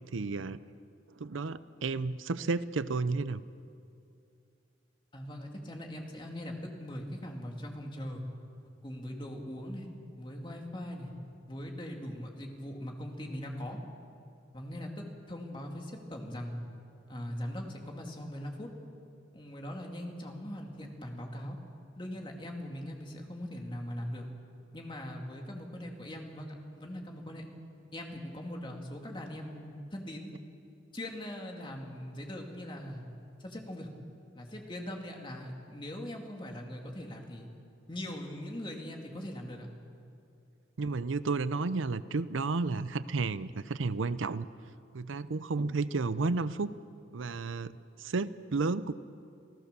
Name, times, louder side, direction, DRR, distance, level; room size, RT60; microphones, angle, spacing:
voice 1, 0.1-0.6 1.2-3.4 40.8-44.5 44.9-46.7 47.1-48.9, right 3 dB, 90° right, 15 dB, 0.6 m, -32 dB
voice 2, 5.1-8.2 8.8-9.9 10.2-11.1 11.5-13.8 14.5-16.6 17.1-18.7 19.3-21.6 21.9-24.3 24.7-27.5 27.9-30.3 30.9-33.0 33.4-33.9 34.4-37.5 37.9-39.7, left 1 dB, 25° left, 1 dB, 2.5 m, -41 dB
28.0 x 16.5 x 6.9 m, 2.5 s
head